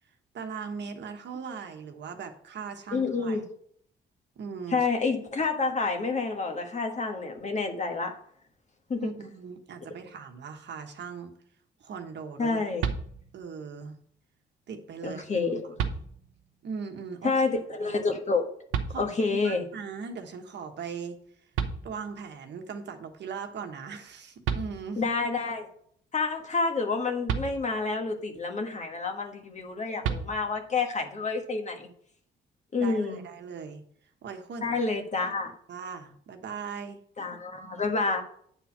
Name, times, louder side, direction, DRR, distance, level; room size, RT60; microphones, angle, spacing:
voice 1, 0.3-3.4 4.4-4.9 9.0-11.3 11.8-12.6 13.3-14.0 14.7-16.0 16.6-17.3 17.8-18.0 18.9-21.2 21.8-25.0 32.8-33.8 34.2-34.7 35.7-37.0, right 6 dB, 60° right, 1.3 m, -39 dB
voice 2, 2.9-3.4 4.7-8.1 8.9-9.1 12.4-12.9 15.0-15.7 17.2-18.5 19.0-19.6 25.0-25.7 26.1-31.9 32.7-33.2 34.6-35.5 37.2-38.2, left 4 dB, 35° left, 1.5 m, -28 dB
sound 1, 12.8-13.6 15.1-15.2 15.8-16.5 18.7-19.5 21.2-21.3 21.5-22.4 24.1-24.2 24.4-25.2 27.3-28.1 30.0-30.8, right 6 dB, 80° right, 0.9 m, -33 dB
9.1 x 4.4 x 6.0 m
cardioid pair, 90°, 20 cm